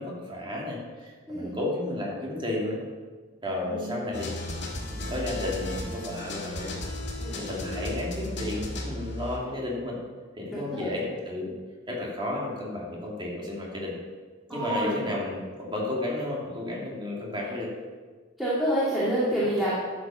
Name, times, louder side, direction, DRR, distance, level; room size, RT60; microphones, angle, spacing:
voice 1, 0.0-2.8 3.4-4.3 4.9-6.7 7.3-10.0 10.4-11.5 11.9-14.0 14.5-17.7, left 1 dB, 25° right, -3 dB, 2.8 m, -32 dB
voice 2, 1.3-1.6 3.6-4.0 7.2-7.4 10.5-10.9 14.5-15.0 18.4-19.7, right 1 dB, ahead, -10 dB, 2.4 m, -28 dB
sound 1, 4.1-9.4, left 1 dB, 60° left, 2.5 m, -35 dB
12.5 x 7.9 x 5.8 m, 1.4 s
head